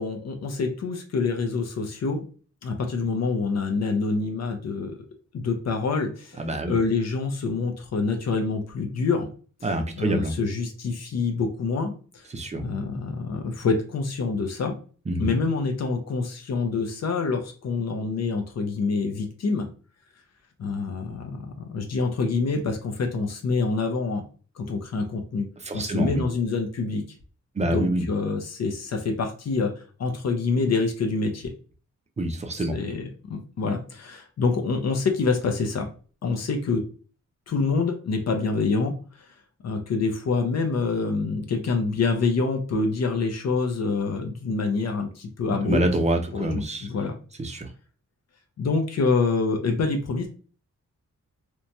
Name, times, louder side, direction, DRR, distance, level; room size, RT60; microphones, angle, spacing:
voice 1, 0.0-2.3 2.6-4.9 5.3-9.3 10.0-12.2 12.6-14.8 15.2-19.7 20.6-24.2 24.6-25.5 25.7-27.0 27.6-29.7 30.0-31.5 32.6-35.9 36.2-36.8 37.5-38.9 39.6-45.8 46.3-47.1 48.6-50.3, left 4 dB, 60° left, 5 dB, 0.6 m, -26 dB
voice 2, 6.4-6.8 9.6-10.3 12.3-12.6 15.1-15.3 25.6-26.2 27.6-28.0 32.2-32.8 45.7-46.9 47.4-47.7, right 1 dB, 25° right, 5 dB, 0.4 m, -26 dB
3.0 x 2.2 x 2.6 m, 0.39 s
wide cardioid pair, 135°, 29 cm